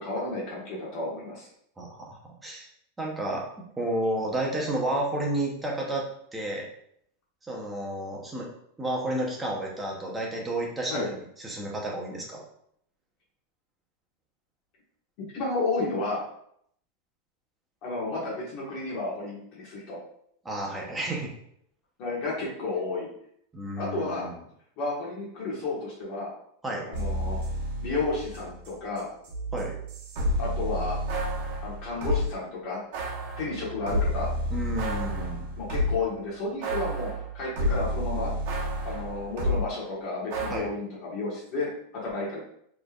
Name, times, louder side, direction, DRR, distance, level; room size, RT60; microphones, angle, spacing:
voice 1, 0.0-1.5 10.9-11.1 15.3-16.2 17.8-20.0 22.0-23.1 23.8-24.3 24.8-26.3 26.8-27.4 27.8-29.1 30.4-31.0 31.6-32.8 33.4-34.3 35.6-38.3 38.8-42.4, left 3 dB, 40° left, -5 dB, 1.4 m, -32 dB
voice 2, 1.8-2.7 3.0-3.4 3.8-6.0 6.3-6.7 7.4-8.5 8.8-12.4 20.4-21.3 23.5-24.4 26.6-26.9 29.5-29.7 34.5-35.5 40.5-40.7, right 1 dB, 10° right, -2 dB, 0.9 m, -31 dB
sound 1, 26.9-28.7 29.0-32.3 32.9-36.1 36.6-39.6 40.3-40.6, equal, 60° right, 1.2 m, -30 dB
4.2 x 3.3 x 2.4 m, 0.69 s
supercardioid pair, 160°, 0 cm